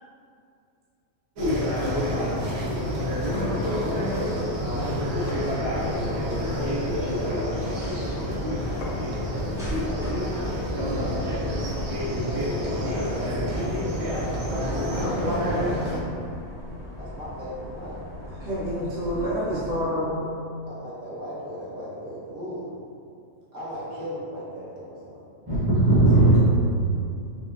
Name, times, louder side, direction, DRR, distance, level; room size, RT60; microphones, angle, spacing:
sound 1, 1.4-16.0, equal, 90° right, 1.1 m, -27 dB
sound 2, 3.2-3.6 4.8-4.9 5.3-6.1 6.7-7.2 8.8-9.2, left 2 dB, 85° left, 1.0 m, -43 dB
sound 3, 3.9-19.8, left 1 dB, 5° right, 0.3 m, -39 dB
voice 1, 12.8-14.3 17.0-18.0 19.9-20.3 20.7-22.7 23.5-25.2, equal, 65° right, -10 dB, 1.5 m, -37 dB
voice 2, 15.0-15.8 18.4-20.1, equal, 50° right, -10 dB, 1.0 m, -28 dB
voice 3, 25.5-26.4, right 2 dB, 20° right, -9 dB, 0.7 m, -17 dB
5.8 x 2.0 x 2.5 m, 2.4 s
omnidirectional pair, 1.4 m